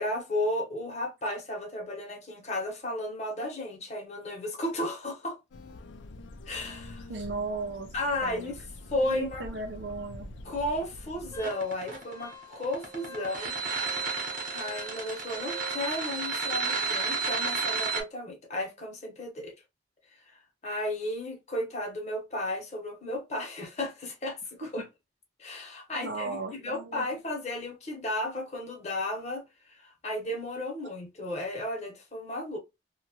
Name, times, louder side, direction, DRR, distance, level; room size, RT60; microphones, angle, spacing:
voice 1, 0.0-5.4 6.5-7.1 7.9-8.6 8.9-9.4 10.4-13.5 14.5-19.5 20.3-24.8 25.4-29.4 29.7-32.6, left 1 dB, 35° left, 1.0 m, -34 dB
sound 1, 5.5-11.4, left 2 dB, 70° left, 0.4 m, -45 dB
voice 2, 7.1-7.9 8.2-8.5 9.0-10.3 24.6-24.9 26.0-27.1, right 3 dB, 65° right, 0.6 m, -36 dB
Wind instrument woodwind instrument, 11.3-15.9, right 2 dB, 15° left, 0.6 m, -47 dB
sound 2, 11.4-18.0, right 4 dB, 45° right, 1.0 m, -31 dB
2.8 x 2.3 x 2.9 m
head